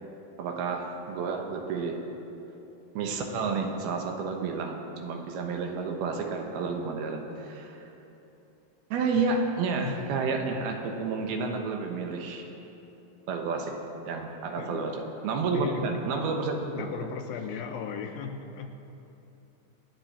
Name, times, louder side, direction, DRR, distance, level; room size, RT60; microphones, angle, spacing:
voice 1, 0.4-2.1 2.9-7.9 8.9-12.5 13.3-13.8 14.1-14.9 15.2-16.9, right 4 dB, 80° right, 3 dB, 3.1 m, -30 dB
voice 2, 9.8-10.2 14.6-14.9 15.5-16.0 16.7-18.7, left 6 dB, 80° left, 5 dB, 2.2 m, -36 dB
25.0 x 9.2 x 4.3 m, 2.9 s
omnidirectional pair, 4.4 m